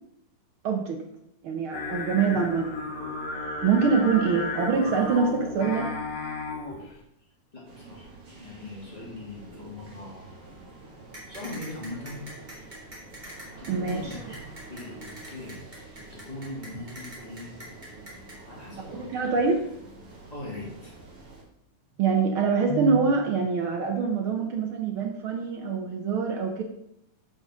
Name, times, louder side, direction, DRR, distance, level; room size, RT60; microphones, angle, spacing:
voice 1, 0.6-1.0 1.4-2.8 3.6-5.9 13.7-14.0 18.9-19.6 22.0-26.6, right 5 dB, 80° right, 3 dB, 1.2 m, -25 dB
Singing, 1.7-6.9, left 3 dB, 90° left, 3.9 m, -34 dB
voice 2, 7.5-8.1 8.4-10.3 11.3-12.2 13.6-15.9 16.1-17.5 18.5-19.2 20.3-20.9, left 1 dB, 15° left, -4 dB, 2.5 m, -40 dB
sound 1, 7.6-21.4, right 2 dB, 45° right, 3.5 m, -48 dB
sound 2, 11.1-18.4, equal, 15° right, 2.5 m, -43 dB
9.3 x 5.2 x 6.4 m, 0.80 s
omnidirectional pair, 3.7 m